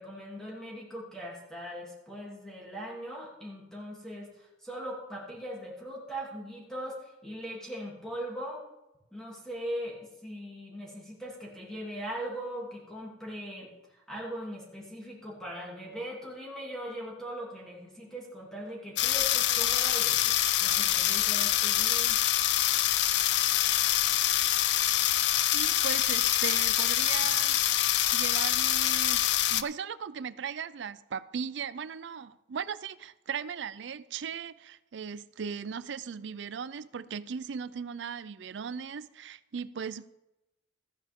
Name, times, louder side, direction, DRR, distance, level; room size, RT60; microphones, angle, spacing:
voice 1, 0.0-8.6 9.1-22.2, equal, 5° left, 2.8 m, -40 dB
sound 1, 19.0-29.6, left 12 dB, 65° left, 0.5 m, -25 dB
voice 2, 25.5-29.2 29.5-40.1, right 6 dB, 75° right, 0.4 m, -38 dB
14.5 x 9.8 x 3.6 m
head